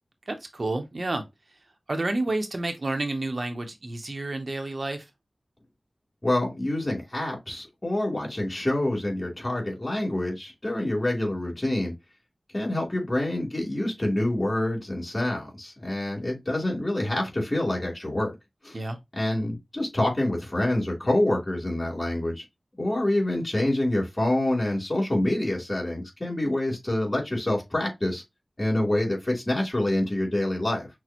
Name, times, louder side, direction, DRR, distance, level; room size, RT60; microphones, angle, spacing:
voice 1, 0.3-1.2 1.9-5.0 18.7-19.0, right 2 dB, 60° right, 0.8 m, -30 dB
voice 2, 6.2-11.9 12.5-18.3 18.6-18.8 19.2-22.4 22.8-28.2 28.6-30.9, left 1 dB, 35° left, 2.9 m, -26 dB
6.1 x 2.1 x 2.9 m
cardioid pair, 45°, 0 cm